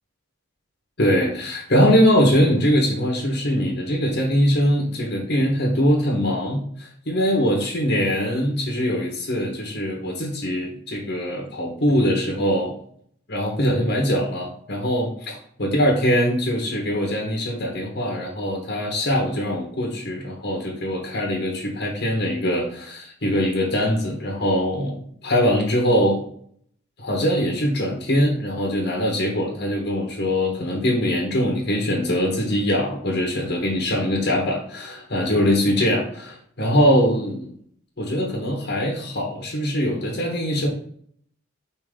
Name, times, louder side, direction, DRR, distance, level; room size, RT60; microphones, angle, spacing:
voice 1, 1.0-12.7 13.3-26.2 27.0-37.5 38.0-40.7, equal, 55° left, -1 dB, 1.4 m, -22 dB
5.1 x 3.8 x 5.1 m, 0.62 s
head